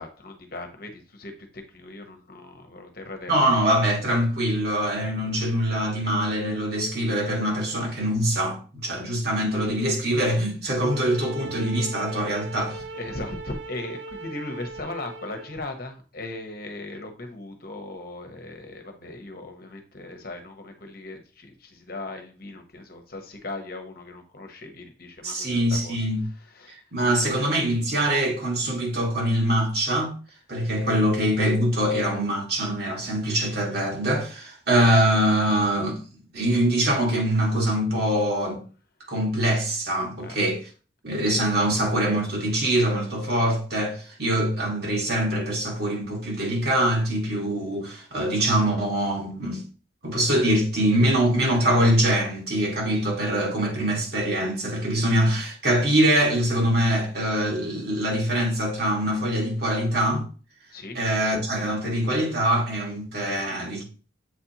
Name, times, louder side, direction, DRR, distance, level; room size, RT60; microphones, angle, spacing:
voice 1, 0.0-3.5 12.9-26.0 26.5-26.8 40.2-40.4 60.7-61.0, left 2 dB, 50° left, 1.1 m, -38 dB
voice 2, 3.3-12.8 25.2-26.2 26.7-30.2 30.5-36.0 36.3-38.6 39.1-40.6 41.0-49.6 50.0-60.3 61.0-63.8, right 1 dB, 55° right, 2.0 m, -23 dB
sound 1, 10.7-15.6, right 3 dB, 70° right, 0.8 m, -39 dB
7.7 x 4.2 x 3.0 m
head